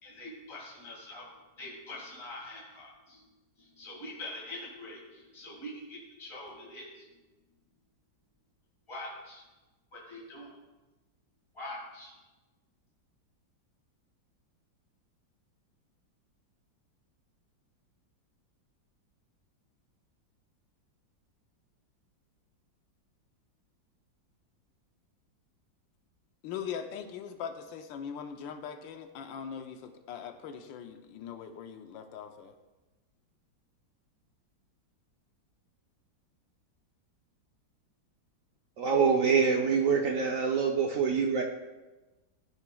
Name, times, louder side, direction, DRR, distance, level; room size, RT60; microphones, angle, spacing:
voice 1, 0.0-1.3 1.6-3.2 3.6-7.1 8.9-9.4 9.9-10.5 11.5-12.1, left 1 dB, 15° left, -4 dB, 2.0 m, -44 dB
voice 2, 26.4-32.5, left 7 dB, 80° left, 6 dB, 1.4 m, -41 dB
voice 3, 38.8-41.4, right 6 dB, 70° right, 1 dB, 0.7 m, -25 dB
13.5 x 7.2 x 2.3 m, 1.1 s
omnidirectional pair, 2.1 m